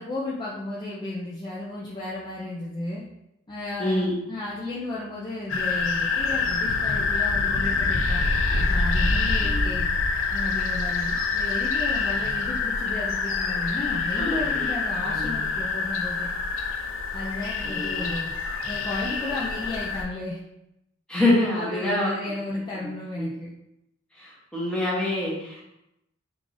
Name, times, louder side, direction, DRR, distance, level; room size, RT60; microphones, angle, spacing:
voice 1, 0.0-3.0 3.5-8.2 8.7-9.9 10.3-16.3 17.1-18.3 18.7-20.4 21.5-23.5, left 2 dB, 20° left, -6 dB, 0.4 m, -33 dB
voice 2, 3.8-4.2 9.4-9.7 12.2-12.4 14.1-14.6 15.0-15.4 17.6-18.1 21.1-22.1 22.8-22.9 23.2-23.4 24.2-25.6, left 1 dB, 5° left, -7 dB, 1.0 m, -26 dB
sound 1, 5.5-20.0, left 4 dB, 85° left, 0.4 m, -26 dB
3.7 x 2.5 x 3.2 m, 0.86 s
head